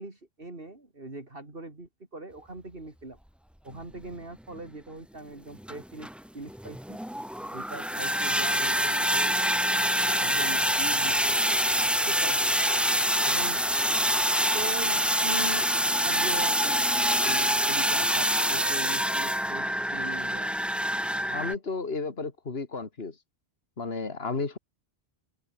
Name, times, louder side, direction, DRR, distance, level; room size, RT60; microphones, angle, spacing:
voice 1, 0.0-3.2 3.6-6.1 6.3-7.0 7.5-9.4 10.2-11.4 12.1-12.6 13.2-13.6 14.5-15.7 16.0-20.6, right 2 dB, 65° right, 3.9 m, -41 dB
sound 1, 3.7-3.8 4.6-4.7 5.6-21.5, equal, ahead, 0.4 m, -26 dB
voice 2, 21.3-23.2 23.8-24.6, left 4 dB, 75° left, 2.5 m, -33 dB
omnidirectional pair, 1.0 m